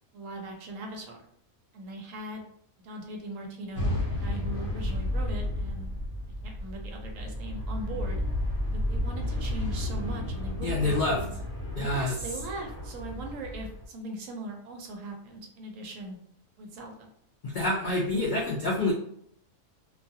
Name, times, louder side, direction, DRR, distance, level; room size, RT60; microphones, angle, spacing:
voice 1, 0.1-1.2 1.7-2.4 2.8-5.9 6.4-8.2 8.7-11.3 11.7-16.2 16.6-17.1, right 2 dB, 70° right, 2 dB, 0.9 m, -40 dB
sound 1, 3.7-13.8, left 1 dB, 50° left, 1.2 m, -32 dB
voice 2, 10.6-11.2 11.8-12.1 17.4-18.9, left 2 dB, 65° left, -5 dB, 0.4 m, -27 dB
2.5 x 2.3 x 2.6 m, 0.69 s
omnidirectional pair, 1.5 m